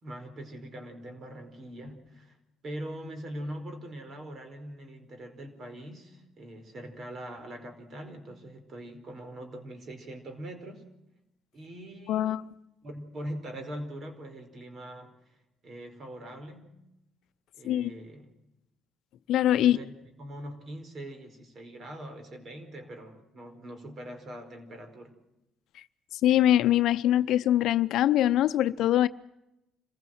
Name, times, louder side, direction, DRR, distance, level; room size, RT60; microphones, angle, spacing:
voice 1, 0.0-2.4 2.6-10.8 11.5-12.4 12.8-15.1 15.6-16.7 17.6-18.3 19.6-25.1, right 1 dB, 50° right, 4.8 m, -42 dB
voice 2, 12.1-12.4 17.6-17.9 19.3-19.8 26.2-29.1, left 12 dB, 70° left, 0.7 m, -23 dB
26.5 x 15.5 x 7.9 m
cardioid pair, 85°, 0 cm